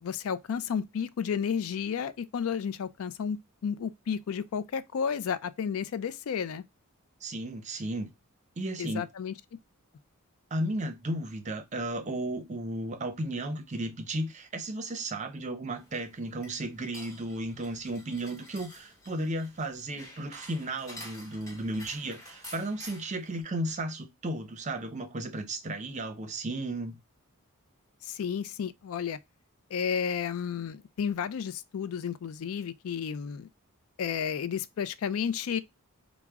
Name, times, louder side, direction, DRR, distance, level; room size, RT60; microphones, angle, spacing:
voice 1, 0.0-6.6 8.8-9.3 28.0-29.2 29.7-33.5 34.0-35.6, left 7 dB, 70° left, 0.3 m, -32 dB
voice 2, 7.2-8.1 8.6-9.1 10.5-27.0, right 1 dB, 30° right, 0.6 m, -34 dB
sound 1, 15.8-23.4, equal, 15° left, 1.0 m, -49 dB
4.6 x 2.0 x 3.4 m
head